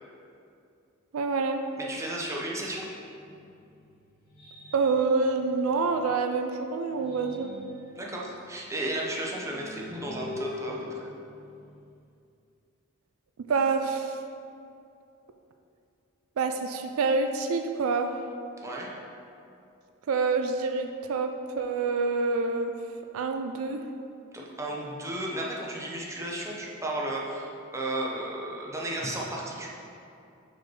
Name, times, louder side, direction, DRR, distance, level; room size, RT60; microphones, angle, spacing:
voice 1, 1.1-1.6 4.7-7.5 13.5-14.2 16.4-18.1 20.1-21.3 21.6-22.7 23.1-23.8, right 4 dB, 80° right, 6 dB, 0.4 m, -27 dB
voice 2, 1.8-2.9 8.0-11.1 18.6-18.9 24.3-29.7, right 1 dB, 15° right, -3 dB, 0.7 m, -34 dB
sound 1, 3.2-6.3 6.8-12.0, left 2 dB, 45° left, 1.4 m, -44 dB
4.9 x 4.6 x 4.7 m, 2.6 s
head